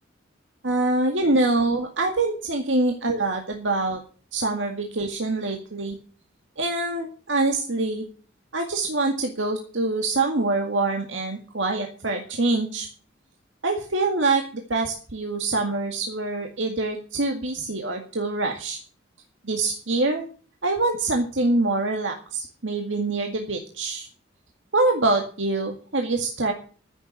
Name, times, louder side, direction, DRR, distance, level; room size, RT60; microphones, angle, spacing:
voice 1, 0.6-4.0 4.3-6.0 6.6-8.0 8.5-12.9 13.6-18.8 19.4-20.3 20.6-24.1 24.7-26.5, right 2 dB, 75° right, 3 dB, 2.0 m, -25 dB
14.5 x 7.3 x 8.3 m, 0.41 s
head